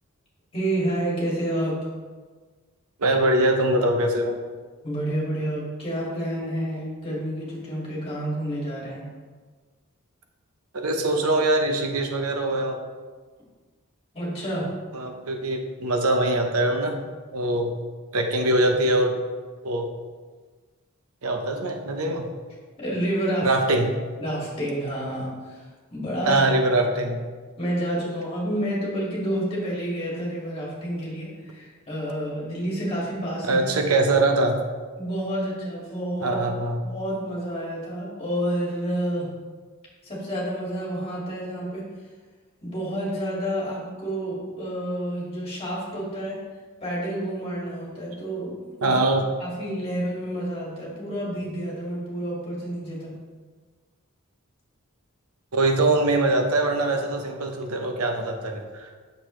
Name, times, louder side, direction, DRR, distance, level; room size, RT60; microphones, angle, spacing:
voice 1, 0.5-1.8 4.8-9.1 14.1-14.7 22.8-23.5 24.2-26.5 27.6-33.6 35.0-36.4 36.8-39.3 40.0-41.9 42.6-46.4 46.8-48.9 49.4-53.2, right 1 dB, 25° left, -5 dB, 2.2 m, -29 dB
voice 2, 3.0-4.3 10.7-12.8 14.9-17.0 17.3-17.7 18.1-19.1 19.6-19.9 21.2-22.3 23.4-23.9 26.3-27.2 33.5-34.6 36.2-36.8 48.8-49.2 55.5-58.9, right 2 dB, 80° right, 4 dB, 0.9 m, -23 dB
8.0 x 6.6 x 3.2 m, 1.4 s
head